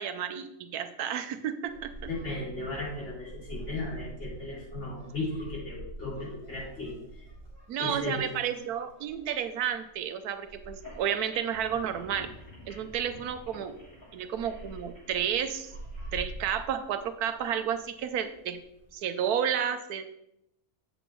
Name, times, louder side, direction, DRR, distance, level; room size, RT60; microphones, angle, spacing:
voice 1, 0.0-2.1 7.7-12.3 12.7-13.8 14.1-15.7 16.1-18.6 18.9-20.0, right 8 dB, 85° right, 10 dB, 1.2 m, -31 dB
sound 1, 1.6-19.0, right 1 dB, 5° right, 3.2 m, -47 dB
voice 2, 2.1-7.3 7.8-8.3, left 2 dB, 50° left, -6 dB, 3.4 m, -36 dB
sound 2, 10.7-16.1, equal, 15° left, 3.4 m, -50 dB
7.9 x 7.8 x 3.1 m, 0.80 s
omnidirectional pair, 1.6 m